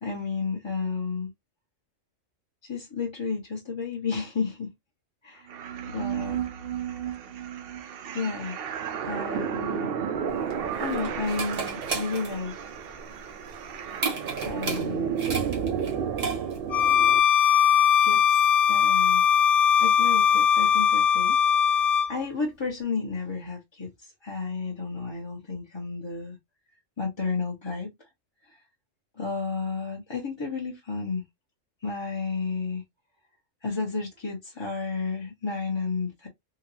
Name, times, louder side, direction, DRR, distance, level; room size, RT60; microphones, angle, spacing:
voice 1, 0.0-1.3 2.6-4.7 5.2-5.5 5.9-6.4 8.1-8.6 9.0-9.9 10.8-12.7 14.4-15.1 18.0-19.2 19.8-21.4 21.7-26.4 27.0-28.1 28.5-28.6 29.2-31.2 31.8-32.8 33.6-36.3, left 4 dB, 25° left, 0.7 m, -32 dB
sound 1, 5.5-17.2, right 8 dB, 60° right, 0.7 m, -32 dB
sound 2, 10.3-16.8, right 4 dB, 75° right, 1.4 m, -34 dB
Bowed string instrument, 16.7-22.1, left 8 dB, 65° left, 0.3 m, -20 dB
3.8 x 2.1 x 2.8 m
omnidirectional pair, 1.3 m